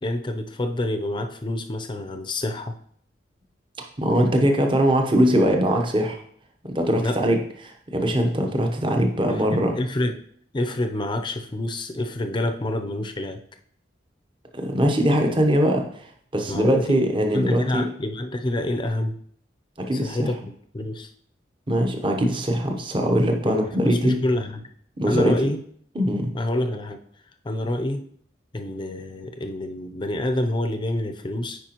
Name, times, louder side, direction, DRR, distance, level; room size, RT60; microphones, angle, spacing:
voice 1, 0.0-2.8 6.9-7.2 9.3-10.1 10.5-13.4 16.5-17.0 17.3-19.2 19.9-21.1 23.4-24.7 25.1-25.6 26.3-27.0 27.4-28.0 28.5-31.6, left 1 dB, 25° left, 7 dB, 0.5 m, -27 dB
voice 2, 4.0-6.2 6.6-7.4 7.6-9.7 14.5-15.8 16.3-17.9 19.8-20.3 21.7-24.2 25.0-25.3 25.9-26.3, equal, 30° right, 3 dB, 0.9 m, -21 dB
9.1 x 4.9 x 3.0 m, 0.63 s
head